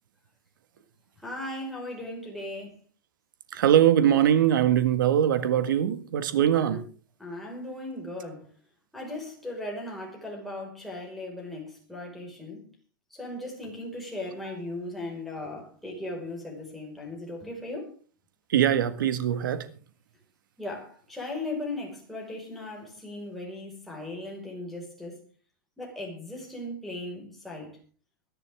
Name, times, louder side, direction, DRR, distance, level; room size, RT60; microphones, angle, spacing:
voice 1, 1.2-2.8 6.6-6.8 7.2-8.5 8.9-12.6 13.1-17.9 20.6-25.2 25.8-27.8, left 1 dB, ahead, 5.1 m, -37 dB
voice 2, 3.5-6.8 18.5-19.6, right 10 dB, 85° right, 1.8 m, -22 dB
24.0 x 11.0 x 3.6 m
supercardioid pair, 160°, 11 cm